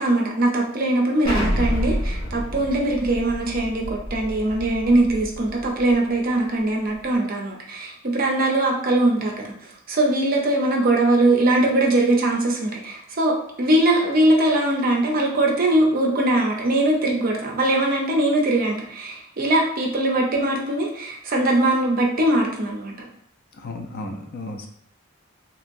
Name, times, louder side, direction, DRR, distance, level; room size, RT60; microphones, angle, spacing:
voice 1, 0.0-22.9, right 1 dB, 45° right, 0 dB, 0.6 m, -21 dB
Explosion, 1.2-5.9, equal, 20° left, 0.8 m, -28 dB
voice 2, 23.6-24.7, left 2 dB, 50° left, 3 dB, 0.4 m, -34 dB
3.0 x 2.8 x 2.6 m, 0.71 s
head